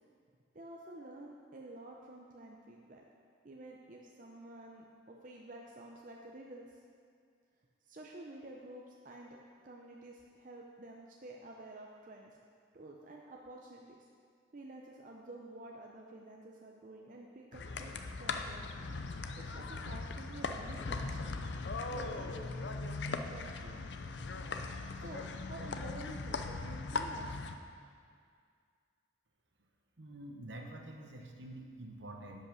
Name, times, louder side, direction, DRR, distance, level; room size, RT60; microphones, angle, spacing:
voice 1, 0.5-3.0 3.4-6.6 7.9-9.4 9.6-12.3 12.7-14.0 14.5-18.9 19.3-21.4 21.9-23.9 25.0-27.5, right 2 dB, 45° right, -1 dB, 0.7 m, -50 dB
sound 1, 17.5-27.6, left 3 dB, 65° left, 0.5 m, -39 dB
voice 2, 30.0-32.5, right 1 dB, 65° right, 2 dB, 1.1 m, -47 dB
10.5 x 5.6 x 6.2 m, 2.2 s
head